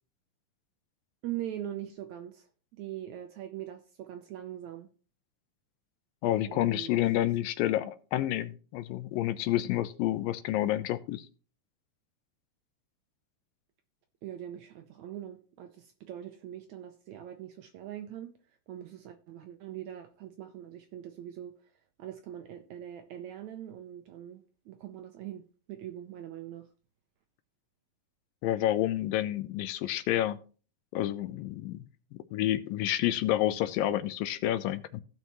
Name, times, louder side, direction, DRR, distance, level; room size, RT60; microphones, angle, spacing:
voice 1, 1.2-2.5 2.7-4.9 6.4-6.9 7.2-7.3 14.2-18.3 18.7-21.5 22.0-26.7, right 11 dB, 75° right, 1.8 m, -42 dB
voice 2, 6.2-11.3 28.4-30.4 30.9-31.9 32.3-35.0, left 13 dB, 85° left, 2.4 m, -29 dB
15.5 x 5.6 x 3.0 m
omnidirectional pair, 4.0 m